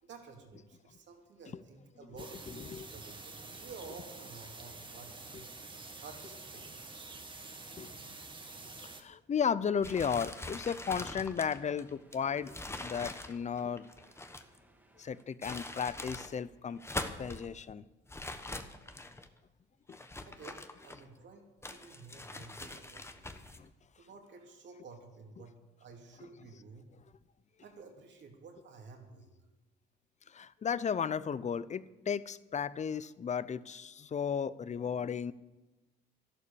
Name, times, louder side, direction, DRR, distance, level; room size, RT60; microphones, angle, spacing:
voice 1, 0.0-5.5 6.0-7.0 20.2-23.6 24.0-26.9 27.6-29.3, right 4 dB, 65° right, 2 dB, 3.0 m, -52 dB
sound 1, 2.2-9.0, right 3 dB, 25° right, 1.5 m, -48 dB
voice 2, 8.8-12.5 12.8-13.8 15.0-16.8 17.2-17.8 19.9-20.0 23.6-23.7 30.3-35.3, left 7 dB, 35° left, 18 dB, 0.6 m, -34 dB
sound 2, 9.8-14.6 15.2-16.3 16.7-17.5 18.1-19.3 19.9-21.2 21.6-23.6, left 2 dB, 15° left, 1.1 m, -43 dB
sound 3, 10.2-15.2, right 1 dB, 10° right, 2.3 m, -65 dB
12.0 x 11.5 x 7.0 m, 1.1 s
cardioid pair, 90°, 20 cm